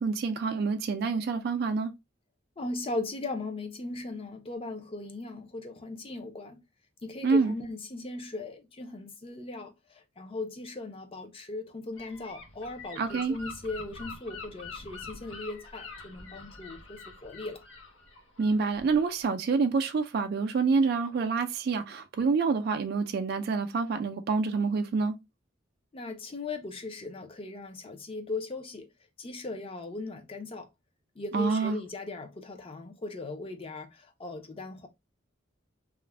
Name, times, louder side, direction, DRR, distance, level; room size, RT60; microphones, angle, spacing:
voice 1, 0.0-1.9 7.2-7.5 13.0-13.4 18.4-25.1 31.3-31.8, right 4 dB, 55° right, 0.3 m, -27 dB
voice 2, 2.6-6.6 7.0-17.6 25.9-28.9 29.2-30.7 31.2-34.9, left 2 dB, 30° left, 0.5 m, -38 dB
Gull seagull / Wind, 12.0-19.2, left 4 dB, 85° left, 0.8 m, -45 dB
2.4 x 2.1 x 3.2 m
head